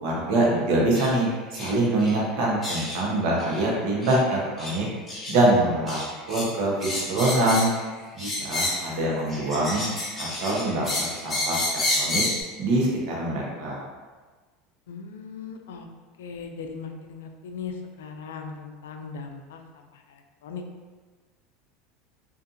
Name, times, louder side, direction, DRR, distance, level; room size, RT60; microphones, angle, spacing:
voice 1, 0.0-4.9 5.3-6.0 6.3-7.7 8.1-9.8 10.2-12.2 12.6-13.8, right 1 dB, 65° right, -3 dB, 0.8 m, -24 dB
sound 1, 0.9-1.1 1.5-1.7 2.0-2.1 2.6-3.0 3.4-3.6 4.0-4.2 4.6-4.8 5.1-5.4 5.9-6.5 6.8-7.8 8.2-8.9 9.3-12.4, left 2 dB, 20° left, 0.8 m, -29 dB
voice 2, 14.9-15.9 16.2-20.6, left 5 dB, 90° left, 4 dB, 0.3 m, -39 dB
2.5 x 2.4 x 2.7 m, 1.4 s
supercardioid pair, 110°, 0 cm